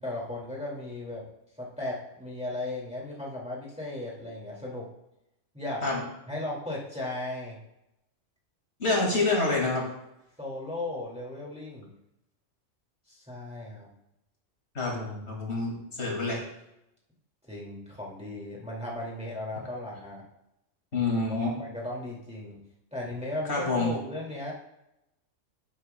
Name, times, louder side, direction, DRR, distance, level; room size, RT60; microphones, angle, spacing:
voice 1, 0.0-1.3 1.6-4.9 5.5-5.9 6.3-7.6 10.4-11.9 13.1-13.9 17.5-20.2 21.3-22.6 22.9-24.5, left 1 dB, 5° right, -4 dB, 2.1 m, -36 dB
voice 2, 8.8-9.8 14.7-16.4 20.9-21.5 23.5-23.9, left 3 dB, 60° left, -2 dB, 2.4 m, -27 dB
10.5 x 9.9 x 2.2 m, 0.86 s
omnidirectional pair, 1.3 m